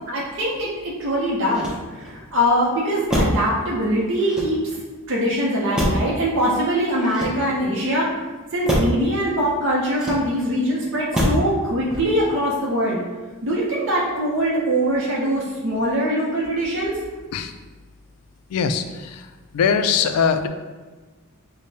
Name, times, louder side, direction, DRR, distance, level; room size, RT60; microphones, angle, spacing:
voice 1, 0.0-4.6 5.1-8.1 8.5-13.0 13.4-17.0, equal, 60° right, -5 dB, 0.6 m, -22 dB
Motor vehicle (road), 1.5-2.2 3.1-3.5 4.2-4.9 5.8-6.2 7.0-7.8 8.7-9.0 9.9-10.5 11.1-11.5 11.9-12.3, equal, 5° right, 0.5 m, -25 dB
voice 2, 18.5-19.3 19.5-20.5, left 6 dB, 85° left, 8 dB, 0.3 m, -21 dB
5.1 x 2.1 x 2.7 m, 1.3 s
head